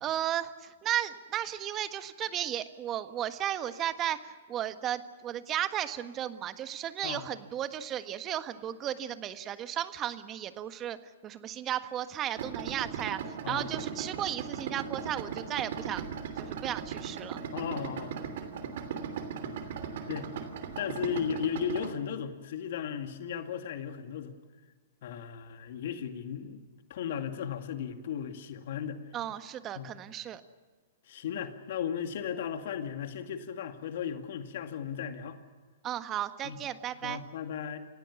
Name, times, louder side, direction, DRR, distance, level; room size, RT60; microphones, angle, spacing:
voice 1, 0.0-11.0 11.2-16.0 16.4-17.4 29.1-30.4 35.8-37.2, right 11 dB, 30° right, 10 dB, 1.4 m, -34 dB
Idling, 12.4-21.9, right 7 dB, 60° right, 2.9 m, -38 dB
voice 2, 17.5-18.3 19.4-19.6 20.1-20.3 20.8-24.4 25.0-26.6 26.9-29.0 29.8-29.9 31.1-35.4 36.4-36.6 37.0-37.8, left 8 dB, 60° left, 7 dB, 2.2 m, -36 dB
29.0 x 16.5 x 7.1 m, 1.4 s
hypercardioid pair, 120°, 0 cm